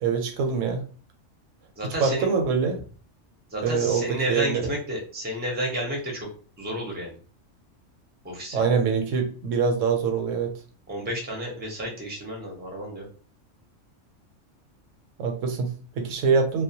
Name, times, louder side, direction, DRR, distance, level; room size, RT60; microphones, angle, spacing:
voice 1, 0.0-0.8 1.8-2.8 3.6-4.7 8.5-10.5 15.2-16.6, right 5 dB, 80° right, 4 dB, 1.0 m, -24 dB
voice 2, 1.8-2.3 3.5-6.3 6.6-7.2 8.2-8.6 10.9-13.1, equal, 15° right, -1 dB, 0.4 m, -31 dB
2.3 x 2.1 x 2.7 m, 0.40 s
omnidirectional pair, 1.3 m